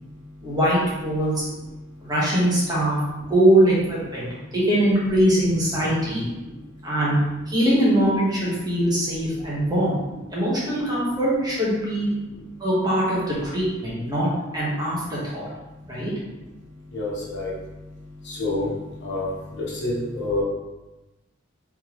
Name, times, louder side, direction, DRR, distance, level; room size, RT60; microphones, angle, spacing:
voice 1, 0.4-1.5 2.0-3.0 3.3-4.3 4.5-6.3 6.8-7.2 7.5-9.9 10.3-12.1 12.6-14.3 14.5-15.5 15.8-16.1, right 1 dB, 20° right, -7 dB, 1.4 m, -22 dB
voice 2, 16.9-17.5 18.3-18.7 19.0-19.3 19.8-20.4, left 2 dB, 65° left, -5 dB, 1.2 m, -27 dB
3.5 x 3.3 x 3.1 m, 1.0 s
head